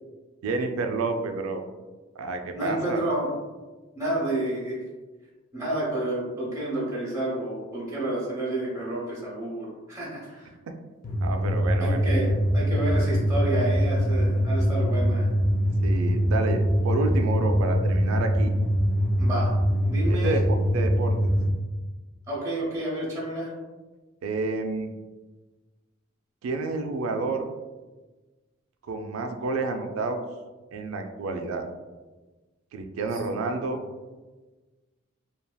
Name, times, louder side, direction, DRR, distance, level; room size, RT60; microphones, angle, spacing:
voice 1, 0.4-1.6 2.2-3.0 11.2-12.0 15.8-18.5 20.1-21.3 24.2-24.9 26.4-27.5 28.9-30.2 30.7-31.6 32.7-33.8, right 3 dB, 85° right, 5 dB, 0.3 m, -29 dB
voice 2, 2.5-3.3 3.9-4.8 5.5-10.5 11.8-15.3 19.2-19.5 19.9-20.4 22.3-23.5, right 1 dB, 15° right, -6 dB, 0.7 m, -30 dB
sound 1, 11.0-21.5, equal, 40° left, 0.4 m, -23 dB
3.3 x 2.3 x 2.2 m, 1.2 s
head